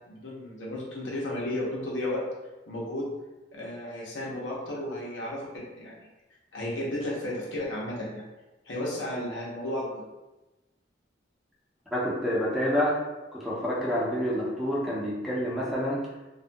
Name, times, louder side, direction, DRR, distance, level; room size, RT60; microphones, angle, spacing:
voice 1, 0.1-2.2 2.7-3.0 3.5-5.4 5.7-6.0 6.5-8.2 8.7-9.8, left 1 dB, 85° left, -5 dB, 0.8 m, -33 dB
voice 2, 11.9-12.9 13.3-16.0, equal, ahead, -7 dB, 0.5 m, -28 dB
2.4 x 2.2 x 2.6 m, 1.1 s
head